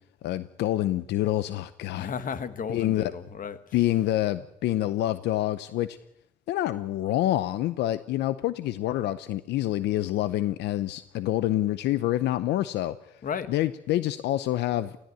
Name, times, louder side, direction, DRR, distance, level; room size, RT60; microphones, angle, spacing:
voice 1, 0.2-2.1 2.7-3.1 3.7-6.0 6.5-13.0 13.5-15.0, left 14 dB, 85° left, 15 dB, 0.7 m, -27 dB
voice 2, 1.9-3.9 13.2-13.5, left 6 dB, 50° left, 12 dB, 1.6 m, -34 dB
18.0 x 16.0 x 9.5 m, 0.83 s
cardioid pair, 85°, 17 cm